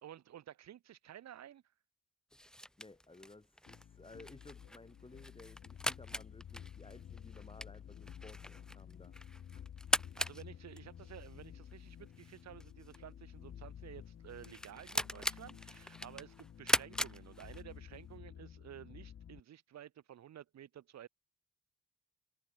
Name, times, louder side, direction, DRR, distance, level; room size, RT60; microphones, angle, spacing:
voice 1, 0.0-1.6 10.2-21.1, right 11 dB, 60° right, 1.6 m, -53 dB
sound 1, 2.3-18.0, equal, ahead, 1.0 m, -40 dB
voice 2, 2.5-9.7, left 2 dB, 20° left, 8.0 m, -57 dB
sound 2, 3.7-19.4, left 9 dB, 45° left, 1.0 m, -52 dB
cardioid pair, 90°, 30 cm